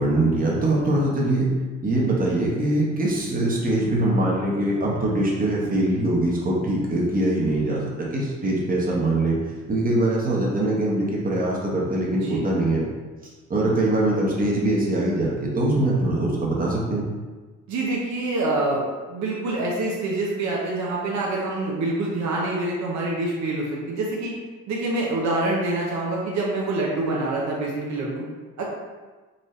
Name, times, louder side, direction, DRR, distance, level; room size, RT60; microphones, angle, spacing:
voice 1, 0.0-1.5 1.8-7.8 8.1-9.4 9.7-12.8 13.5-17.0, right 1 dB, 30° right, -3 dB, 1.1 m, -22 dB
voice 2, 17.7-18.8 19.1-24.3 24.7-28.2 28.6-28.7, right 2 dB, 70° right, -3 dB, 0.8 m, -26 dB
4.1 x 2.6 x 3.2 m, 1.3 s
cardioid pair, 90°, 30 cm